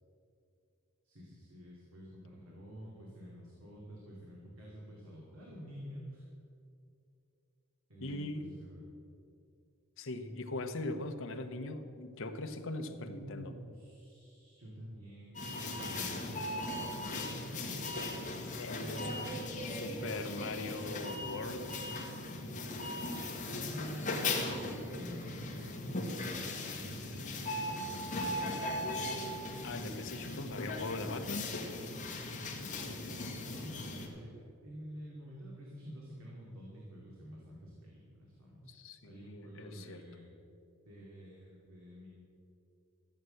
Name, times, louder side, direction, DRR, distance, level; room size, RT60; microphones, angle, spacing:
voice 1, 1.0-6.3 7.9-8.8 13.1-16.6 16.9-18.1 18.8-20.3 22.8-23.0 23.4-24.4 24.7-29.1 32.4-40.3 40.8-42.1, equal, 80° right, -4 dB, 2.6 m, -49 dB
voice 2, 8.0-8.5 10.0-13.5 18.5-19.2 19.7-21.8 22.8-23.1 29.6-31.5 38.6-40.1, left 2 dB, 70° left, 6 dB, 1.0 m, -41 dB
sound 1, 15.4-34.1, left 2 dB, 40° left, 1.8 m, -38 dB
14.5 x 7.9 x 7.8 m, 2.6 s
head